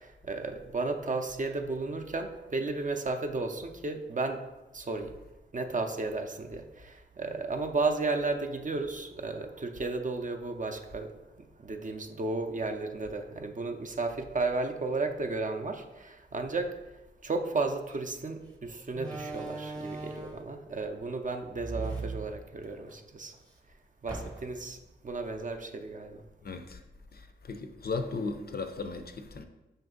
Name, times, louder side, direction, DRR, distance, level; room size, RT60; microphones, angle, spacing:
voice 1, 0.0-4.4 4.7-5.2 5.5-23.4 23.7-23.8 24.0-26.2, right 3 dB, 40° right, 0.5 m, -34 dB
Slam, 17.9-18.1 18.9-20.5 21.5-23.0 23.3-23.4 24.1-24.7, right 3 dB, 20° right, 0.8 m, -39 dB
voice 2, 26.4-26.8 27.1-29.4, left 4 dB, 50° left, 0.5 m, -36 dB
5.3 x 2.6 x 3.7 m
cardioid pair, 45°, 20 cm